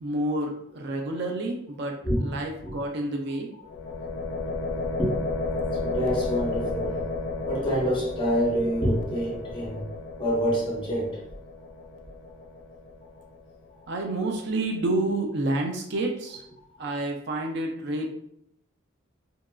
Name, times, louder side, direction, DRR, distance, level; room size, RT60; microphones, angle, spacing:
voice 1, 0.0-1.9 2.2-3.5 13.9-16.4 16.8-18.1, right 2 dB, 55° right, 2 dB, 0.4 m, -29 dB
sound 1, 3.7-13.5, left 3 dB, 70° left, 0.4 m, -33 dB
voice 2, 5.8-7.0 7.5-9.8 10.2-11.2, equal, 25° left, -4 dB, 0.7 m, -26 dB
2.8 x 2.4 x 2.2 m, 0.71 s
head